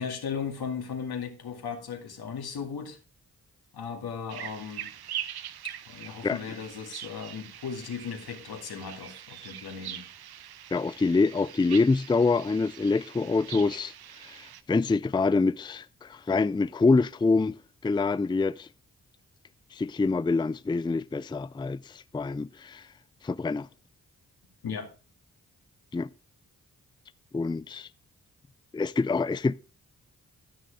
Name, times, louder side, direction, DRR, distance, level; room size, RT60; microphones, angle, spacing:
voice 1, 0.0-3.0 3.7-4.9 5.9-10.1 24.6-24.9, left 6 dB, 85° left, 2.3 m, -36 dB
sound 1, 4.3-14.6, right 11 dB, 85° right, 0.7 m, -42 dB
voice 2, 10.7-13.9 14.2-18.7 19.7-22.8 23.2-23.7 25.9-26.1 27.3-27.9 28.7-29.5, left 3 dB, 15° left, 0.4 m, -26 dB
12.5 x 6.4 x 4.7 m
supercardioid pair, 40°, 37 cm